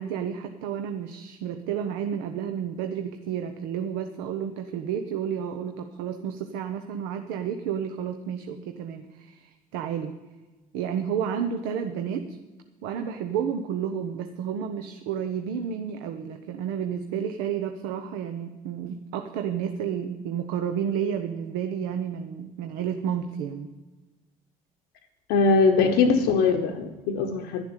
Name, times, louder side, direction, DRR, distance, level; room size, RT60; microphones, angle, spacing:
voice 1, 0.0-10.2 10.7-12.4 12.8-23.7, right 8 dB, 75° right, 7 dB, 0.9 m, -31 dB
voice 2, 25.3-27.6, left 4 dB, 75° left, 4 dB, 1.0 m, -21 dB
11.5 x 7.1 x 9.0 m, 1.2 s
hypercardioid pair, 60°, 19 cm